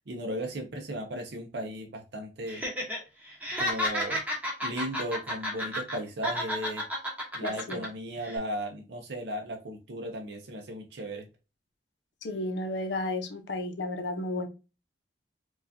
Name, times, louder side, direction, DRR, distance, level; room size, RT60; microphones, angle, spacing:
voice 1, 0.1-2.6 3.6-4.2 4.6-6.8 7.3-11.3, right 1 dB, 70° right, 3 dB, 0.6 m, -36 dB
Laughter, 2.5-3.0 3.3-6.0 6.2-7.9 8.2-8.4, equal, 10° right, 0.9 m, -31 dB
voice 2, 7.4-7.8 12.2-14.5, left 2 dB, 80° left, 6 dB, 0.7 m, -33 dB
4.6 x 2.4 x 2.7 m, 0.29 s
head